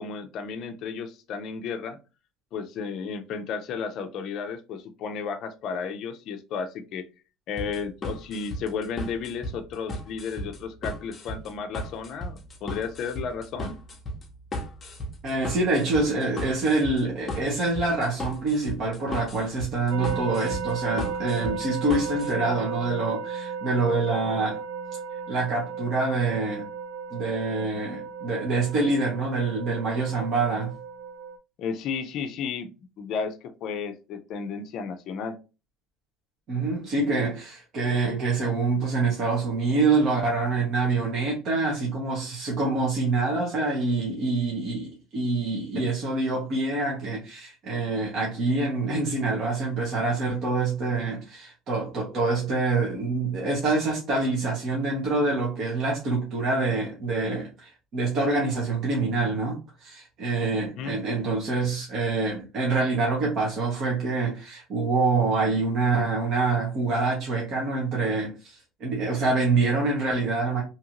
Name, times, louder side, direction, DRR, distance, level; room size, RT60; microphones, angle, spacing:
voice 1, 0.0-2.0 2.5-7.1 7.5-13.8 31.6-32.7 33.0-35.4 60.8-61.0, left 6 dB, 50° left, 0.4 m, -33 dB
sound 1, 7.6-22.3, left 1 dB, 20° left, 0.7 m, -36 dB
voice 2, 15.2-24.6 25.3-26.7 27.1-30.7 36.5-70.6, right 3 dB, 45° right, 0.9 m, -26 dB
sound 2, 19.9-31.4, right 6 dB, 70° right, 0.4 m, -35 dB
2.8 x 2.5 x 2.9 m
cardioid pair, 145°, 0 cm